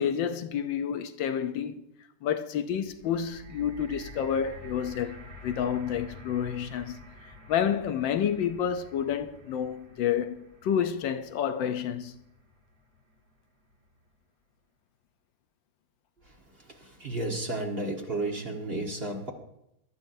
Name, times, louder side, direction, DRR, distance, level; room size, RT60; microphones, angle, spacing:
voice 1, 0.0-1.8 2.2-7.0 7.5-12.1, left 8 dB, 85° left, 1.5 m, -29 dB
sound 1, 2.9-13.1 13.8-13.9, left 1 dB, 60° right, 3.0 m, -49 dB
voice 2, 16.7-19.3, right 2 dB, 35° right, 1.6 m, -32 dB
22.0 x 12.0 x 2.7 m
omnidirectional pair, 2.0 m